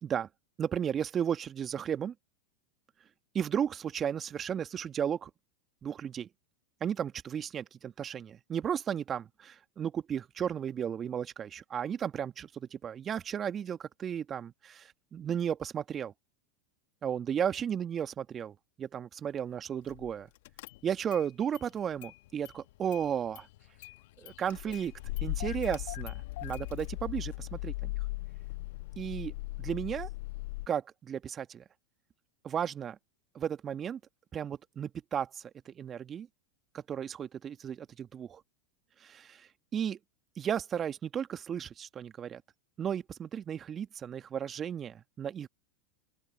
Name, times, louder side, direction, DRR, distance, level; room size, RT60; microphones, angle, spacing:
voice 1, 0.6-2.1 3.3-5.3 5.8-6.3 6.8-16.1 17.0-20.3 20.8-23.5 24.2-24.9 25.2-27.9 29.0-29.3 29.6-30.1 30.7-31.6 32.4-33.0 33.4-34.0 34.3-36.3 36.7-38.4 39.0-40.0 40.4-42.4 42.8-45.5, right 8 dB, 30° right, 1.8 m, -34 dB
Car / Engine starting, 19.9-20.1 20.4-21.3 21.5-22.6 22.9-30.7, left 20 dB, 65° left, 1.1 m, -39 dB
open air
hypercardioid pair, 95°, 0 cm